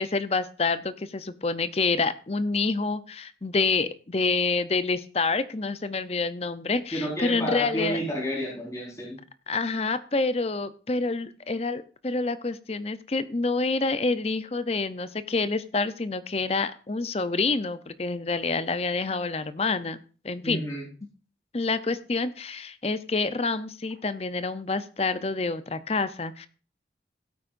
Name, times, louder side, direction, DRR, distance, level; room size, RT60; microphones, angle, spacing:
voice 1, 0.0-8.1 9.5-20.0 20.2-20.6 21.5-26.5, left 3 dB, 35° left, 13 dB, 0.6 m, -27 dB
voice 2, 6.9-9.2 20.4-20.9, equal, 20° left, -4 dB, 4.6 m, -30 dB
16.5 x 8.9 x 2.6 m, 0.37 s
head